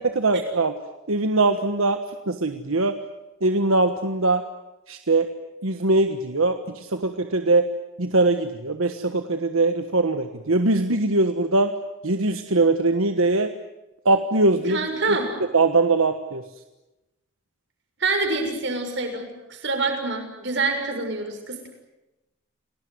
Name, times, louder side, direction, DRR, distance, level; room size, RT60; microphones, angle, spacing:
voice 1, 0.1-0.7 1.1-2.0 2.3-3.0 3.4-4.4 4.9-5.3 5.6-7.7 8.0-11.7 12.0-13.5 14.0-14.8 15.1-15.2 15.5-16.4, right 2 dB, 85° right, 7 dB, 1.4 m, -21 dB
voice 2, 14.7-15.3 18.0-21.7, right 3 dB, 55° right, 4 dB, 6.6 m, -26 dB
29.0 x 19.0 x 9.6 m, 1.0 s
head